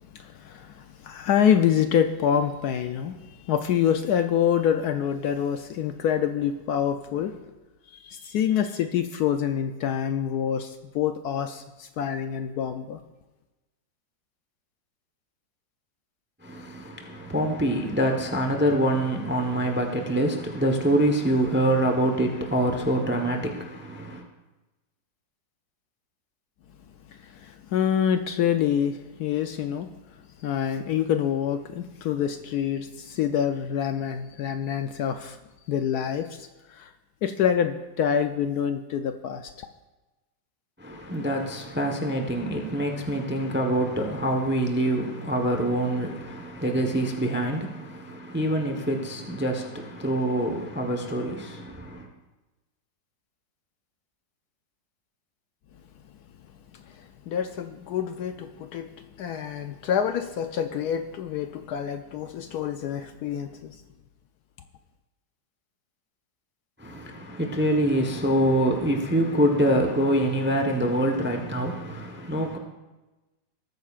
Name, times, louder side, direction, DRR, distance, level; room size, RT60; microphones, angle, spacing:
voice 1, 0.1-7.4 7.9-13.0 27.1-29.9 30.4-35.4 35.7-36.9 37.2-39.7 56.7-58.9 59.2-63.8, left 9 dB, 70° left, 1.0 m, -26 dB
voice 2, 16.4-24.2 40.8-52.1 66.8-72.6, right 1 dB, 10° right, 0.6 m, -25 dB
19.0 x 9.2 x 2.4 m
omnidirectional pair, 1.9 m